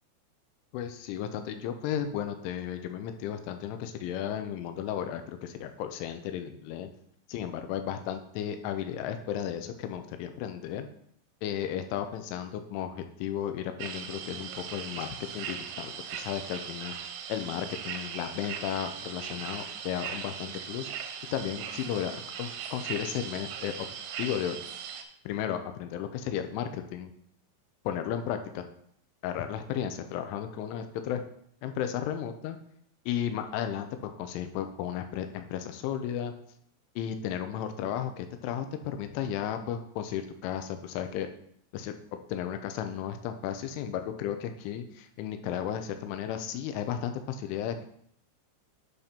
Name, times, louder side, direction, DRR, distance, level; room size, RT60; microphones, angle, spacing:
voice 1, 0.7-6.9 7.3-10.9 11.4-15.1 15.3-16.9 17.3-20.9 21.3-23.9 24.2-24.6 25.3-27.1 27.9-28.6 29.2-31.2 31.6-32.6 33.1-36.3 37.0-41.3 41.7-41.9 42.3-47.9, left 9 dB, 85° left, 7 dB, 3.2 m, -34 dB
sound 1, 13.8-25.0, right 8 dB, 90° right, 3.4 m, -39 dB
10.5 x 4.3 x 5.2 m, 0.68 s
omnidirectional pair, 5.5 m